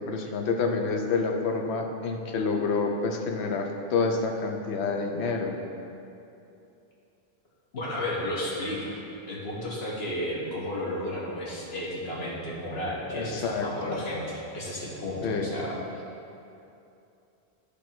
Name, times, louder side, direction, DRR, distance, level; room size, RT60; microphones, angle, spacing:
voice 1, 0.0-5.6 13.1-14.0 15.2-15.5, left 4 dB, 90° left, 3 dB, 1.0 m, -28 dB
voice 2, 7.7-9.0 9.3-15.8, left 1 dB, 70° left, -5 dB, 1.7 m, -33 dB
9.7 x 3.4 x 5.9 m, 2.7 s
omnidirectional pair, 1.1 m